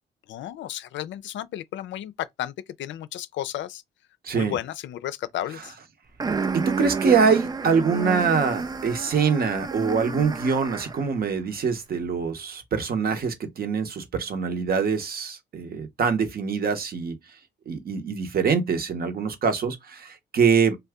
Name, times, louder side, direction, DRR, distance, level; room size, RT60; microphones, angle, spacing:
voice 1, 0.3-2.5 2.8-3.8 4.3-5.7, left 12 dB, 70° left, 0.4 m, -33 dB
voice 2, 4.2-4.6 6.5-17.1 17.7-20.8, right 6 dB, 50° right, 0.9 m, -24 dB
sound 1, 6.2-11.1, right 4 dB, 20° right, 0.3 m, -30 dB
2.7 x 2.2 x 3.5 m
cardioid pair, 90°, 20 cm